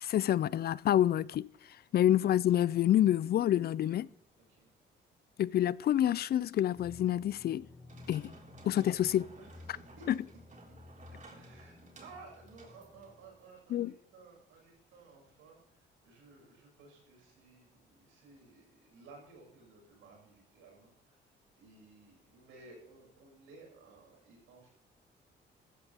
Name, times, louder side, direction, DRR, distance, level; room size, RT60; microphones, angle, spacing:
voice 1, 0.0-1.5 1.9-4.1 5.4-7.7 8.1-8.3 8.6-9.2 13.7-13.9, left 11 dB, 50° left, 0.4 m, -27 dB
sound 1, 6.7-13.4, left 2 dB, 20° left, 5.9 m, -55 dB
sound 2, 7.9-13.6, right 3 dB, 40° right, 3.4 m, -56 dB
voice 2, 8.8-9.1 9.4-10.1 11.4-21.3 21.6-24.7, right 3 dB, 90° right, 6.5 m, -56 dB
15.0 x 13.0 x 3.5 m
cardioid pair, 90°, 20 cm